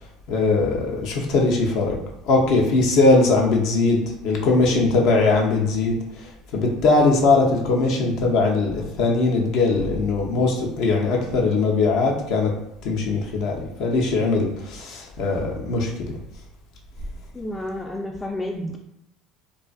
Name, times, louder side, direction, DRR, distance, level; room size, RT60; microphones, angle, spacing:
voice 1, 0.3-2.0 2.3-6.0 6.5-12.5 12.8-15.9, left 3 dB, 65° left, -1 dB, 0.6 m, -20 dB
voice 2, 17.3-18.8, left 1 dB, 20° left, 1 dB, 0.3 m, -30 dB
2.5 x 2.4 x 2.3 m, 0.84 s
hypercardioid pair, 75°, 0 cm